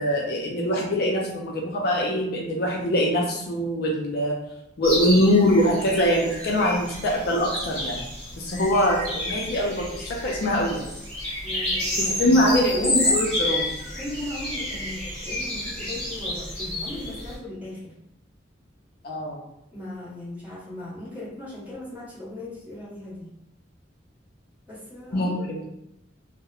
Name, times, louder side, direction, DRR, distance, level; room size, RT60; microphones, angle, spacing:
voice 1, 0.0-4.4 4.8-8.0 8.4-10.8 12.0-13.7 19.0-19.4 25.1-25.6, equal, 55° left, -2 dB, 0.4 m, -23 dB
sound 1, 4.8-17.3, left 1 dB, 5° left, 1.1 m, -30 dB
voice 2, 11.4-13.2 14.0-17.9 19.7-23.3 24.7-25.5, left 1 dB, 10° right, -11 dB, 1.2 m, -37 dB
2.9 x 2.0 x 2.3 m, 0.85 s
head